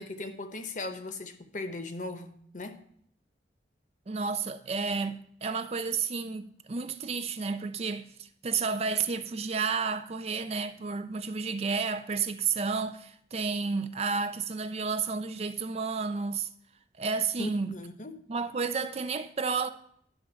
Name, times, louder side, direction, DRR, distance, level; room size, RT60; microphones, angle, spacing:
voice 1, 0.0-2.8 17.4-18.2, left 2 dB, 45° left, 0.9 m, -38 dB
voice 2, 4.1-16.5 17.0-17.7 18.3-19.7, right 5 dB, 35° right, 0.4 m, -31 dB
11.0 x 3.7 x 6.9 m
head